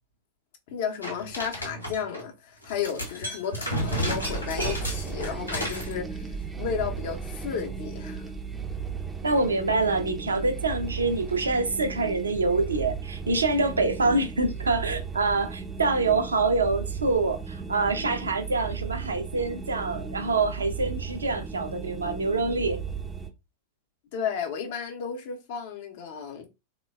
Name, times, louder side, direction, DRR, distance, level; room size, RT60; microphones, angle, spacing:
voice 1, 0.7-8.3 24.1-26.5, left 7 dB, 50° left, 0.6 m, -33 dB
sound 1, 1.0-2.2 2.6-5.9, equal, 85° left, 0.8 m, -32 dB
sound 2, 3.8-23.3, right 5 dB, 10° right, 0.4 m, -36 dB
voice 2, 9.2-22.8, right 3 dB, 75° right, 0.4 m, -26 dB
3.2 x 2.1 x 2.2 m
figure-of-eight pair, 90°, 0 cm